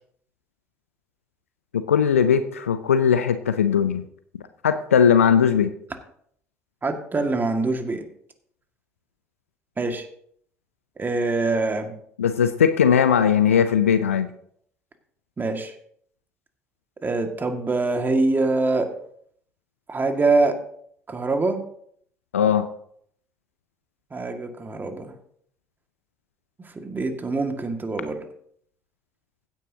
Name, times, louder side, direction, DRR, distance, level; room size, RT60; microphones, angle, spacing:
voice 1, 1.9-4.0 4.6-5.7 12.2-14.3 22.3-22.7, left 7 dB, 85° left, 11 dB, 0.5 m, -19 dB
voice 2, 6.8-8.0 9.8-10.1 11.0-11.9 15.4-15.7 17.0-18.9 19.9-20.6 21.1-21.6 24.1-25.1 26.8-28.2, right 3 dB, 25° right, 5 dB, 2.0 m, -24 dB
16.0 x 9.2 x 2.8 m, 0.64 s
figure-of-eight pair, 55°, 7 cm